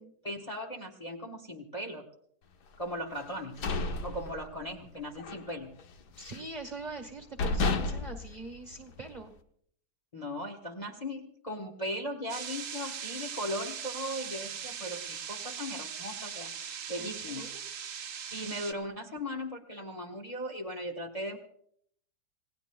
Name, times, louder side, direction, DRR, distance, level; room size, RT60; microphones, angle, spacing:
voice 1, 0.2-2.1 2.8-3.6 4.0-5.7 10.1-16.5 16.9-17.5 18.3-21.4, equal, 25° left, 2 dB, 1.0 m, -38 dB
sound 1, 3.3-4.9 5.2-5.5 5.8-6.6 7.0-7.1 7.4-9.2, left 3 dB, 70° left, 1.5 m, -32 dB
voice 2, 6.2-9.3 17.0-17.6 18.0-18.3, right 3 dB, 25° right, 5 dB, 1.4 m, -44 dB
sound 2, 12.3-18.7, right 7 dB, 55° right, 1.1 m, -40 dB
27.5 x 17.0 x 2.3 m, 0.65 s
omnidirectional pair, 1.8 m